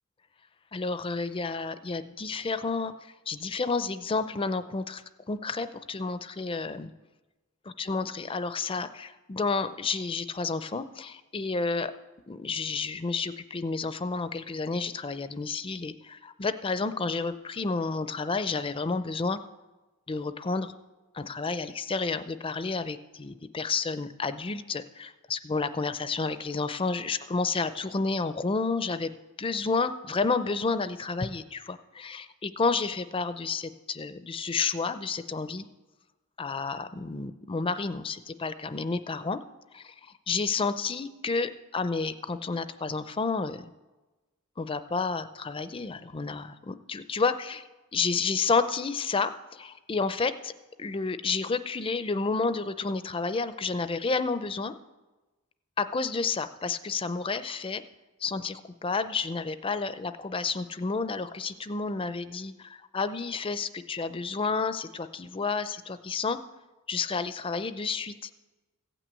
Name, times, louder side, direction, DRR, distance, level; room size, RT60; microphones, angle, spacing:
voice 1, 0.7-6.9 7.8-11.9 12.3-19.4 20.1-20.7 21.1-35.7 36.4-39.4 39.7-43.6 44.6-47.7 47.9-50.5 50.8-54.7 55.8-57.8 58.2-66.4 66.9-68.3, left 4 dB, 25° left, 12 dB, 0.5 m, -30 dB
15.5 x 6.1 x 8.2 m, 1.2 s
head